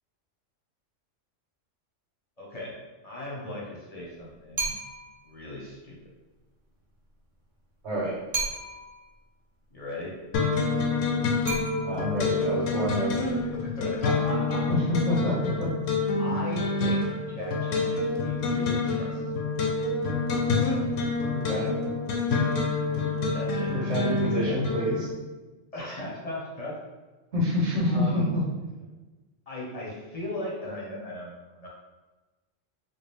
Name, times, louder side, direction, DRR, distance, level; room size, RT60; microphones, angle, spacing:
voice 1, 2.4-2.7 3.0-4.8 5.2-6.0 9.7-10.2 13.3-14.6 16.2-19.5 23.3-23.7 24.3-24.5 25.7-26.8 27.9-28.3 29.5-31.7, left 1 dB, 35° left, -4 dB, 0.8 m, -37 dB
sound 1, 4.6-5.2 8.3-9.0 11.5-12.3, right 3 dB, 45° right, 0.9 m, -33 dB
voice 2, 7.8-8.2 11.8-13.3 14.7-15.7 21.3-21.7 23.7-25.1 27.3-28.4, left 1 dB, 65° right, -4 dB, 1.4 m, -27 dB
sound 2, 10.3-25.1, left 3 dB, 80° left, 0.9 m, -27 dB
4.1 x 2.2 x 3.4 m, 1.2 s
omnidirectional pair, 1.3 m